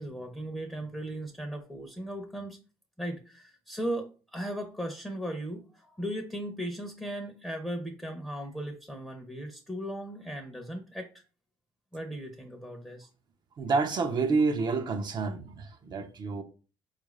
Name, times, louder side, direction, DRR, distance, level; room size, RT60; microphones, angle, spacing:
voice 1, 0.0-2.6 3.0-11.1 11.9-13.1, right 1 dB, 5° left, 0.7 m, -37 dB
voice 2, 13.6-16.4, right 4 dB, 50° right, 0.6 m, -28 dB
4.5 x 2.5 x 3.1 m
cardioid pair, 90°, 10 cm